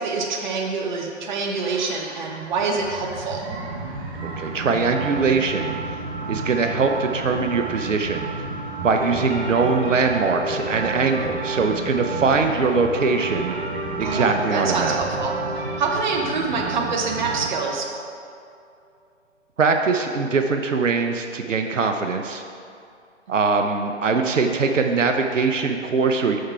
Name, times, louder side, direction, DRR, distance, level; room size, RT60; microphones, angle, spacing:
voice 1, 0.0-3.5 14.0-17.9, right 4 dB, 40° right, 1 dB, 0.9 m, -26 dB
sound 1, 1.6-17.5, right 4 dB, 20° right, 0.6 m, -32 dB
voice 2, 4.2-6.0 6.3-8.3 8.8-13.5 14.0-15.0 19.6-22.4 23.3-26.4, right 4 dB, 85° right, 5 dB, 0.7 m, -22 dB
sound 2, 9.0-18.6, right 1 dB, 55° right, 1.4 m, -34 dB
6.5 x 5.4 x 4.6 m, 2.4 s
figure-of-eight pair, 140°, 37 cm